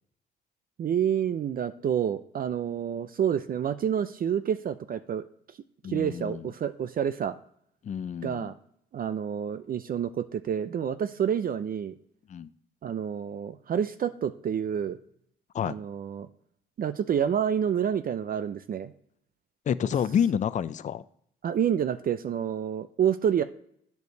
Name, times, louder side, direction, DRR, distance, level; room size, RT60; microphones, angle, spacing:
voice 1, 0.8-5.3 5.9-7.4 8.2-8.5 8.9-11.9 12.8-15.0 15.6-16.3 16.8-18.9 21.4-23.4, right 8 dB, 45° right, 12 dB, 0.5 m, -28 dB
voice 2, 5.8-6.5 7.8-8.5 12.3-12.5 15.5-15.8 19.7-21.0, left 8 dB, 40° left, 15 dB, 0.4 m, -28 dB
8.1 x 4.6 x 6.5 m, 0.68 s
cardioid pair, 90°, 20 cm